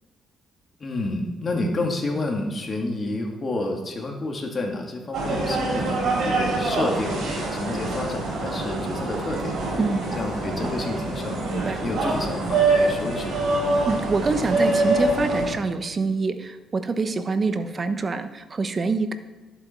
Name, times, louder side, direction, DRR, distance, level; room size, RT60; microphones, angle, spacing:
voice 1, 0.8-7.2 7.5-9.5 10.2-11.4 11.8-13.3, left 2 dB, 35° left, 1 dB, 2.2 m, -29 dB
sound 1, 5.1-15.5, right 2 dB, 65° right, 4.1 m, -25 dB
voice 2, 9.8-10.1 11.5-11.8 13.9-19.1, right 4 dB, 35° right, 10 dB, 0.9 m, -26 dB
11.5 x 8.3 x 4.6 m, 1.3 s
cardioid pair, 90°, 0 cm